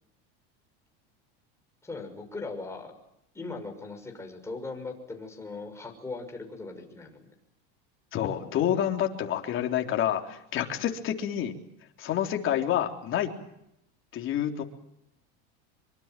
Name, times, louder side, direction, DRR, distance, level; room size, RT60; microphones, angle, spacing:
voice 1, 1.8-2.9 3.3-7.3 10.7-10.9, left 3 dB, 10° left, 2 dB, 6.3 m, -39 dB
voice 2, 8.1-11.5 12.0-13.3 14.1-14.6, left 10 dB, 40° left, 3 dB, 3.8 m, -28 dB
25.0 x 24.5 x 7.7 m, 0.81 s
supercardioid pair, 125°, 30 cm